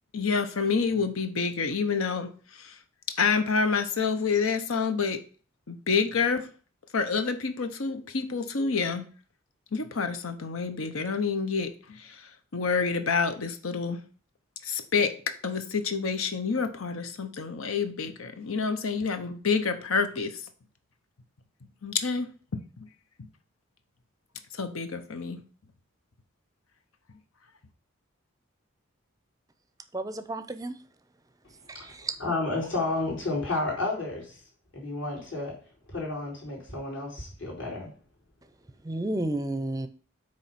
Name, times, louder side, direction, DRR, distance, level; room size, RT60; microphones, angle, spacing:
voice 1, 0.1-2.8 3.2-5.2 5.7-6.5 6.9-9.0 9.7-14.0 14.6-20.4 21.8-22.9 24.5-25.4, left 5 dB, 85° left, 8 dB, 0.9 m, -28 dB
voice 2, 29.9-30.8 32.1-32.2 38.9-39.9, right 2 dB, 15° right, 11 dB, 0.5 m, -31 dB
voice 3, 32.2-34.4 34.7-35.6 35.9-37.9, left 2 dB, 65° left, -4 dB, 4.1 m, -31 dB
8.8 x 3.1 x 5.8 m, 0.40 s
head